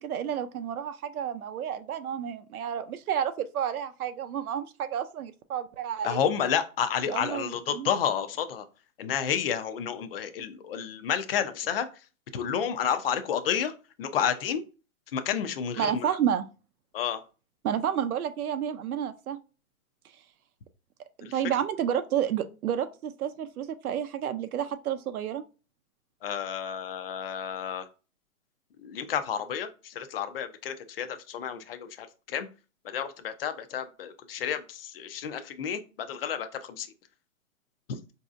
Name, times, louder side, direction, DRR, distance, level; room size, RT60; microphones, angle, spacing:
voice 1, 0.0-6.2 7.1-7.9 15.8-16.5 17.6-19.4 21.2-25.4, right 9 dB, 85° right, 0.5 m, -30 dB
voice 2, 6.0-8.6 9.0-11.9 12.3-14.6 15.1-16.2 16.9-17.2 21.2-21.3 26.2-27.9 28.8-32.5 32.8-36.9, left 8 dB, 45° left, 0.4 m, -30 dB
3.9 x 2.7 x 2.4 m
hypercardioid pair, 145°, 42 cm